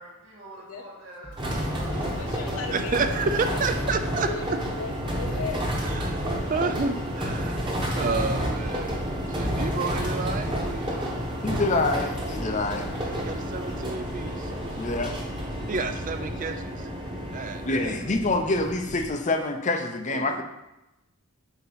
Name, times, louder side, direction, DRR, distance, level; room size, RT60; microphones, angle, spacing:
voice 1, 0.0-2.2, right 1 dB, 60° right, -6 dB, 1.9 m, -46 dB
Drum kit, 1.2-3.7, equal, 5° left, 1.1 m, -45 dB
sound 1, 1.4-19.1, equal, 20° right, 1.2 m, -30 dB
voice 2, 1.9-3.0 3.4-3.8 4.2-5.7, left 4 dB, 80° left, 4 dB, 0.9 m, -37 dB
voice 3, 2.7-4.6 5.8-7.6 7.9-9.0 9.3-11.2 12.9-14.5 15.7-16.9 17.3-18.0 20.1-20.4, right 4 dB, 35° right, 9 dB, 0.4 m, -30 dB
voice 4, 11.4-12.9 14.8-15.2 17.6-20.4, left 2 dB, 35° left, 5 dB, 0.6 m, -26 dB
7.9 x 2.9 x 5.6 m, 0.94 s
head